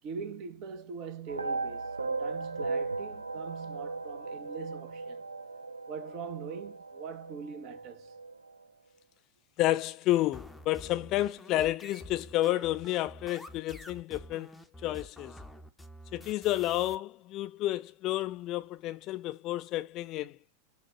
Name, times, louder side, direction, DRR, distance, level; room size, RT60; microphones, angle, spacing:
voice 1, 0.0-5.2 5.9-8.1, right 6 dB, 40° right, 0.8 m, -42 dB
sound 1, 1.3-8.5, right 3 dB, 80° right, 0.3 m, -37 dB
voice 2, 9.6-15.4 16.1-20.4, left 15 dB, 35° left, 0.4 m, -31 dB
sound 2, 10.3-17.0, equal, ahead, 0.7 m, -49 dB
6.0 x 2.3 x 3.0 m
figure-of-eight pair, 90°, 0 cm